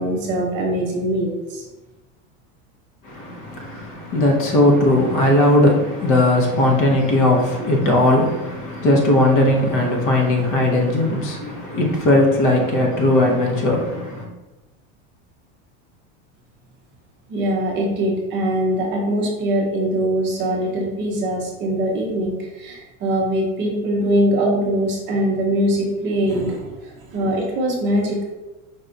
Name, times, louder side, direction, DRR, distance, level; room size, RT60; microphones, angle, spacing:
voice 1, 0.0-1.6 17.3-28.2, right 1 dB, 30° right, 0.8 m, -22 dB
voice 2, 3.0-14.3, left 1 dB, 35° left, 0.8 m, -18 dB
5.2 x 2.3 x 3.9 m
supercardioid pair, 170°, 35 cm